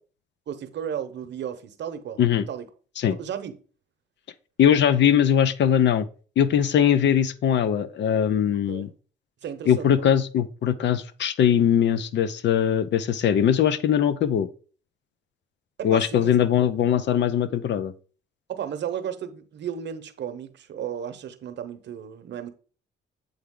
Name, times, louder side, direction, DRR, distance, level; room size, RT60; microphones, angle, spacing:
voice 1, 0.5-2.2 2.5-2.7 3.1-3.5 8.7-8.9 9.4-10.1 15.8-16.3 16.9-17.0 18.5-22.5, right 9 dB, 65° right, 0.8 m, -34 dB
voice 2, 4.6-6.1 6.4-8.9 9.7-14.5 15.8-17.9, left 9 dB, 65° left, 0.6 m, -21 dB
8.0 x 3.4 x 3.7 m
cardioid pair, 90°, 20 cm